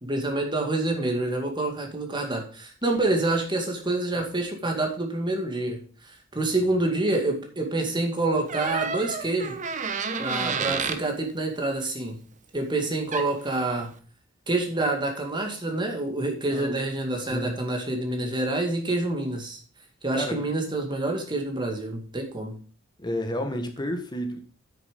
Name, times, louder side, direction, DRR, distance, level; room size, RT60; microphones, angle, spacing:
voice 1, 0.0-9.6 10.2-12.2 12.5-13.9 14.5-19.6 20.0-22.5, right 2 dB, 25° right, 2.1 m, -27 dB
Door, 8.5-11.0 12.8-12.9 13.1-13.5, right 5 dB, 40° right, 1.0 m, -30 dB
voice 2, 23.0-24.4, equal, 20° left, 1.5 m, -30 dB
8.7 x 7.0 x 5.2 m
head